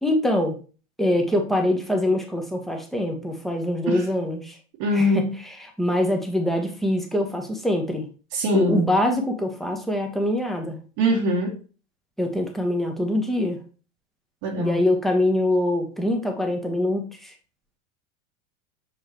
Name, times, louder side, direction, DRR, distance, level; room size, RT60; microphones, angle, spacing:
voice 1, 0.0-0.6 1.0-4.6 4.9-5.2 5.8-8.0 8.5-10.8 12.2-13.6 14.6-17.3, left 1 dB, ahead, 1.3 m, -24 dB
voice 2, 4.8-5.4 8.3-8.8 11.0-11.6 14.4-14.8, equal, 50° right, 1.5 m, -23 dB
6.2 x 5.0 x 3.1 m
hypercardioid pair, 90°, 42 cm